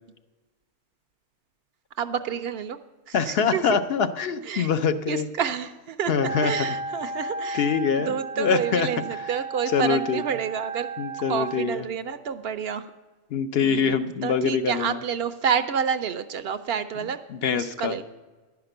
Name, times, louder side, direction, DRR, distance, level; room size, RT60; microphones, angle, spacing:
voice 1, 2.0-2.8 3.1-3.7 4.4-4.7 5.1-10.9 11.3-12.9 13.6-17.2 17.5-18.0, right 7 dB, 65° right, 11 dB, 0.7 m, -29 dB
voice 2, 3.1-5.3 6.1-6.5 7.5-8.9 9.7-10.2 11.0-11.8 13.3-15.0 17.4-18.0, left 6 dB, 65° left, 9 dB, 0.8 m, -24 dB
Wind instrument woodwind instrument, 6.1-11.7, right 3 dB, 10° right, 0.6 m, -34 dB
11.0 x 5.9 x 7.7 m, 1.3 s
omnidirectional pair, 1.2 m